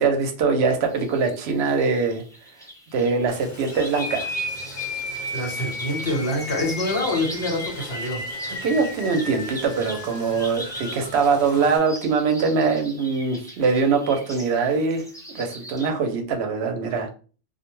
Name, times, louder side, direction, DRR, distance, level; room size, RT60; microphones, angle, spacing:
voice 1, 0.0-2.2 2.9-4.3 8.6-15.0 15.3-17.1, right 5 dB, 75° right, 5 dB, 0.8 m, -22 dB
sound 1, 0.9-15.9, right 1 dB, 5° left, 0.3 m, -41 dB
Boiling, 3.3-11.8, equal, 45° left, 1.0 m, -43 dB
sound 2, 3.7-11.6, left 2 dB, 85° left, 0.9 m, -34 dB
voice 2, 5.1-8.2, left 1 dB, 65° left, -1 dB, 1.1 m, -26 dB
2.3 x 2.1 x 3.0 m, 0.38 s
omnidirectional pair, 1.1 m